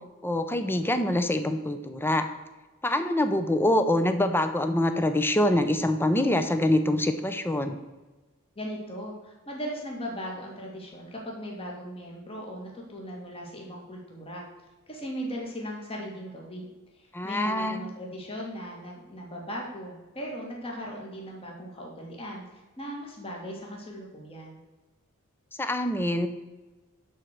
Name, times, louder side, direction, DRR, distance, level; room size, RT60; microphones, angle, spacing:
voice 1, 0.2-2.2 2.8-7.8 17.1-17.8 25.6-26.3, left 1 dB, 10° left, 8 dB, 0.7 m, -25 dB
voice 2, 8.6-14.4 14.9-16.7 16.9-24.6, equal, 25° left, -2 dB, 2.1 m, -38 dB
11.5 x 4.5 x 6.6 m, 1.2 s
head